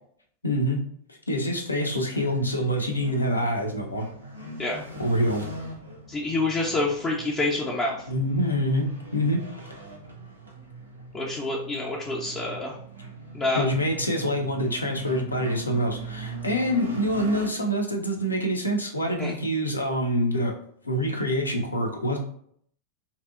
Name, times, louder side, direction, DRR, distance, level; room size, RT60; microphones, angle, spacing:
voice 1, 0.4-0.8 1.3-4.1 5.0-5.5 8.1-9.4 13.5-20.6 20.8-22.2, equal, 80° left, 2 dB, 0.4 m, -26 dB
sound 1, 1.9-17.5, right 2 dB, 75° right, 0.5 m, -41 dB
voice 2, 6.1-8.0 11.1-12.8 13.3-13.6 19.2-19.3, left 2 dB, 20° left, -2 dB, 0.4 m, -27 dB
2.6 x 2.0 x 2.3 m, 0.62 s
figure-of-eight pair, 90°, 0 cm